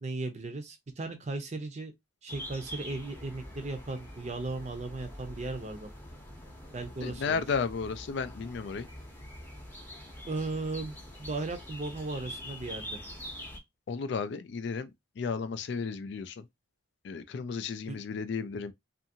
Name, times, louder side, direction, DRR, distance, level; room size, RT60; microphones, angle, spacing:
voice 1, 0.0-1.9 2.2-5.9 6.7-7.4 10.3-13.0 17.9-18.0, right 2 dB, 35° right, 0.6 m, -36 dB
sound 1, 2.3-13.6, equal, 10° left, 0.7 m, -45 dB
voice 2, 7.0-8.9 13.9-14.9 15.2-16.4 17.0-18.7, left 5 dB, 55° left, 0.3 m, -33 dB
2.7 x 2.5 x 2.6 m
head